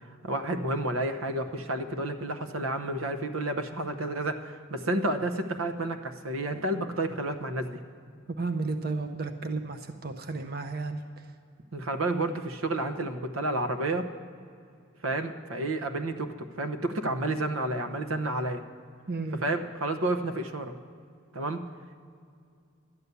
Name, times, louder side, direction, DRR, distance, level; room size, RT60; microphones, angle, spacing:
voice 1, 0.0-7.8 11.7-14.1 15.0-18.6 19.4-20.7 21.3-21.6, right 2 dB, 85° right, 8 dB, 0.9 m, -30 dB
voice 2, 8.3-11.0 19.1-19.4, right 3 dB, 50° right, 8 dB, 0.6 m, -33 dB
12.5 x 9.6 x 6.9 m, 2.3 s
head